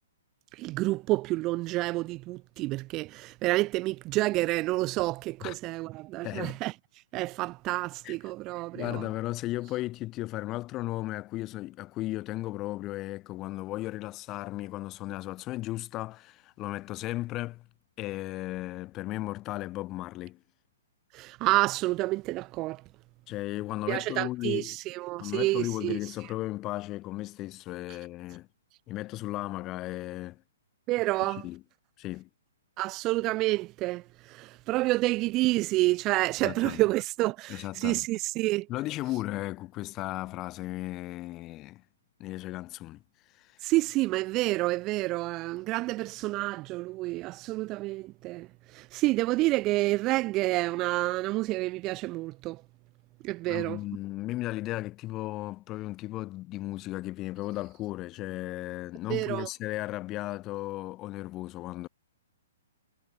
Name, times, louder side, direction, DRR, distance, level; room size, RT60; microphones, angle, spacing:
voice 1, 0.5-6.7 7.1-9.1 21.1-22.8 23.9-26.0 30.9-31.4 32.8-38.7 43.6-48.5 48.7-52.6 53.2-53.8 59.1-59.5, right 19 dB, 30° right, 2.1 m, -29 dB
voice 2, 6.2-6.6 8.0-8.1 8.7-17.7 18.0-20.4 23.3-24.8 25.2-28.5 28.9-30.4 31.3-31.6 32.0-32.3 36.4-36.8 37.5-38.1 38.7-41.8 42.2-43.0 43.3-43.7 53.5-61.9, left 17 dB, 30° left, 6.3 m, -35 dB
hypercardioid pair, 135°, 0 cm